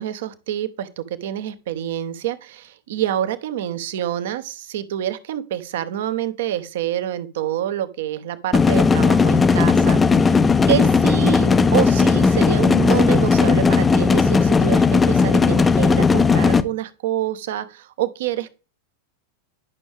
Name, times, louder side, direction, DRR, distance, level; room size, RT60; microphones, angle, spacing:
voice 1, 0.0-10.4 10.7-18.6, right 11 dB, 55° right, 0.8 m, -27 dB
sound 1, 8.5-16.6, left 5 dB, 15° left, 0.5 m, -16 dB
11.0 x 6.1 x 3.5 m
figure-of-eight pair, 90°, 0 cm